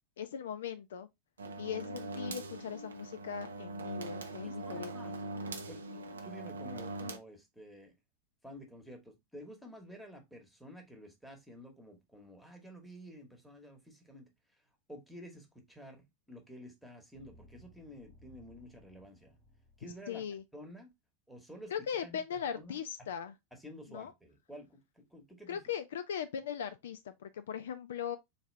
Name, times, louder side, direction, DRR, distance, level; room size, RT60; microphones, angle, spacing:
voice 1, 0.2-1.1 1.6-5.2 20.1-20.4 21.7-23.3 23.9-24.1 25.5-28.2, left 8 dB, 60° left, 0.3 m, -39 dB
sound 1, 1.4-7.2, right 2 dB, 70° right, 0.5 m, -42 dB
voice 2, 4.4-5.2 5.7-7.9 8.4-14.3 14.9-19.4 19.8-20.2 20.5-20.9 21.3-22.2 22.5-22.8 23.5-25.6, equal, ahead, 1.1 m, -51 dB
sound 2, 17.1-20.0, equal, 40° left, 0.9 m, -60 dB
3.9 x 2.7 x 3.1 m
figure-of-eight pair, 90°, 0 cm